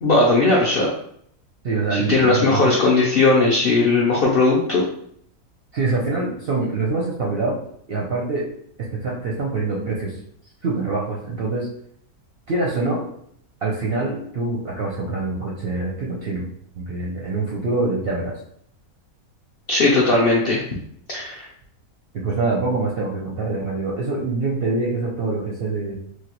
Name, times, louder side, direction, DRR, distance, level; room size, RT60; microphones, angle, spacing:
voice 1, 0.0-0.9 1.9-4.8 19.7-20.6 21.1-21.5, left 3 dB, 65° left, -4 dB, 0.5 m, -18 dB
voice 2, 1.6-2.7 5.7-7.6 7.9-8.4 9.0-10.1 10.6-11.7 12.5-13.0 13.6-16.5 16.8-18.4 22.2-25.9, right 3 dB, 60° right, -4 dB, 0.6 m, -24 dB
3.2 x 2.3 x 2.9 m, 0.66 s
omnidirectional pair, 1.6 m